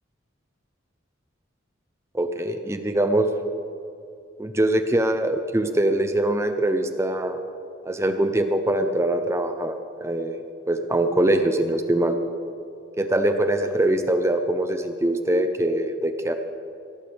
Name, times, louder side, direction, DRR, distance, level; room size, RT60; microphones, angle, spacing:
voice 1, 2.1-3.3 4.4-7.4 7.8-10.4 10.7-12.2 13.0-16.3, right 1 dB, 15° right, 7 dB, 0.6 m, -23 dB
17.5 x 14.5 x 3.5 m, 2.6 s
head